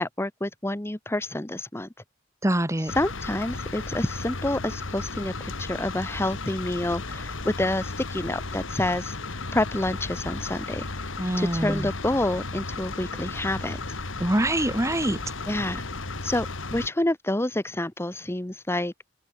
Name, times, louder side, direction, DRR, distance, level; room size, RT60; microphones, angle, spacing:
voice 1, 0.0-1.9 2.9-9.1 9.5-10.9 11.4-13.8 15.5-15.9 16.2-18.9, left 1 dB, 15° left, 1.0 m, -28 dB
voice 2, 2.4-2.9 11.2-11.9 14.2-15.2, right 1 dB, 15° right, 1.5 m, -24 dB
sound 1, 2.9-16.9, left 3 dB, 75° left, 2.5 m, -34 dB
open air
head